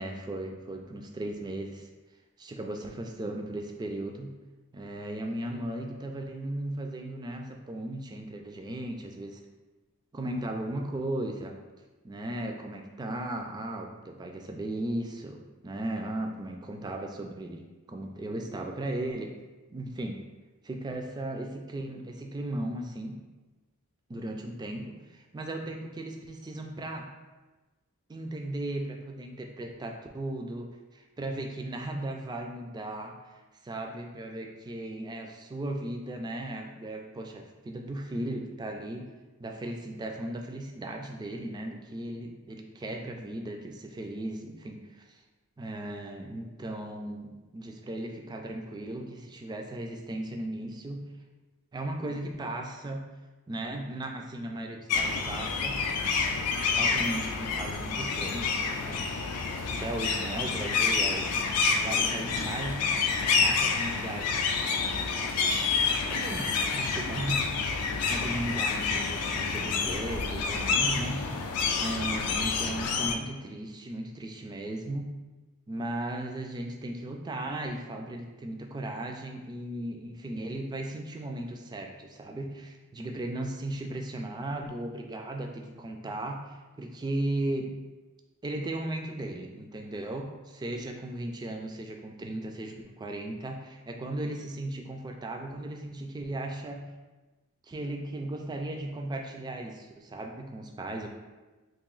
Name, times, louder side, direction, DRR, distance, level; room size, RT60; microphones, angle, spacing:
voice 1, 0.0-1.9 2.4-4.4 4.7-9.4 10.1-11.6 12.0-17.6 17.9-19.3 19.7-20.2 20.6-23.2 24.1-27.1 28.1-30.7 30.9-33.3 33.6-39.1 39.4-45.2 45.6-51.1 51.7-53.1 53.5-55.8 56.8-59.0 59.8-61.3 61.6-62.8 63.4-64.4 65.0-65.1 66.1-67.4 68.1-71.2 71.8-75.1 75.7-87.7 88.4-96.8 97.7-101.1, right 1 dB, 20° right, 3 dB, 0.3 m, -36 dB
sound 1, 54.9-73.1, left 5 dB, 85° left, 0.4 m, -28 dB
2.9 x 2.6 x 3.8 m, 1.2 s
head